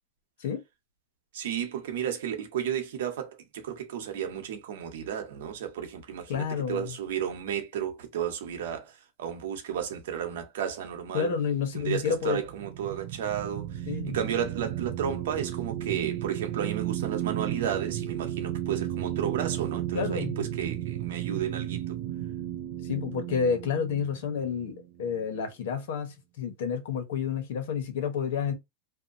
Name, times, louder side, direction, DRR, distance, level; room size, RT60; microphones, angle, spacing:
voice 1, 1.3-11.3 11.7-13.9 14.1-22.0, right 9 dB, 80° right, 0.9 m, -33 dB
voice 2, 6.3-6.9 11.1-12.4 13.9-14.2 19.9-20.5 22.8-28.5, left 6 dB, 75° left, 0.9 m, -30 dB
sound 1, 11.7-25.4, right 12 dB, 55° right, 0.4 m, -34 dB
2.7 x 2.2 x 2.5 m
supercardioid pair, 145°, 0 cm